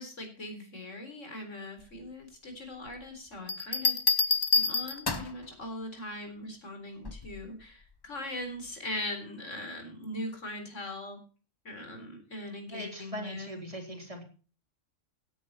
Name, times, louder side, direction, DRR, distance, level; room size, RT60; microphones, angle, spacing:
voice 1, 0.0-11.2 11.6-13.5, left 1 dB, 70° left, 5 dB, 4.3 m, -40 dB
sound 1, 3.5-5.4 7.1-7.4, left 3 dB, 20° left, 1.0 m, -27 dB
voice 2, 12.7-14.2, equal, 25° right, 3 dB, 3.8 m, -40 dB
16.5 x 10.0 x 4.3 m, 0.38 s
omnidirectional pair, 1.3 m